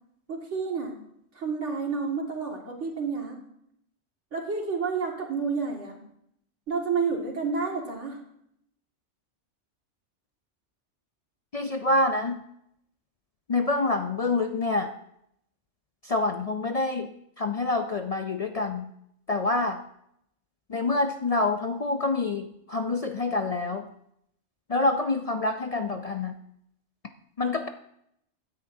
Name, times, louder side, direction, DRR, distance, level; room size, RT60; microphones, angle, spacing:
voice 1, 0.3-0.9 1.4-3.4 4.3-6.0 6.7-8.2, right 5 dB, 85° right, 0 dB, 2.4 m, -30 dB
voice 2, 11.5-12.4 13.5-14.9 16.0-18.9 19.3-19.8 20.7-23.9 24.7-26.4 27.4-27.7, left 2 dB, 50° left, 6 dB, 0.5 m, -27 dB
16.0 x 9.7 x 2.7 m, 0.74 s
omnidirectional pair, 1.2 m